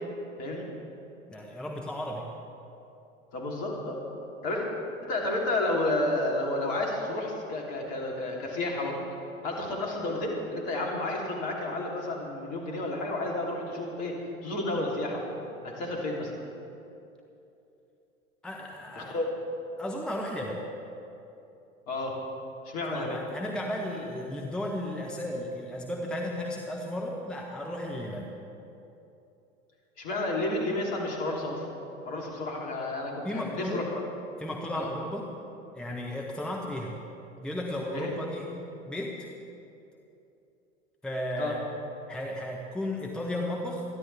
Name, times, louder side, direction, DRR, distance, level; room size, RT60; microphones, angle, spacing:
voice 1, 1.3-2.3 18.4-19.1 19.8-20.6 22.9-28.3 33.2-33.9 34.4-35.3 35.7-37.0 37.4-38.5 38.9-39.3 41.0-41.7 42.1-43.8, left 1 dB, ahead, -1 dB, 1.1 m, -34 dB
voice 2, 3.3-4.0 4.4-4.7 5.0-9.0 9.4-14.1 14.4-15.2 15.6-16.3 19.0-19.3 21.9-22.2 22.6-23.2 30.0-31.7 32.0-34.0 34.7-34.9 37.9-38.1 41.4-41.6, left 2 dB, 50° left, -2 dB, 3.3 m, -31 dB
26.5 x 11.0 x 3.5 m, 2.8 s
figure-of-eight pair, 85°, 39 cm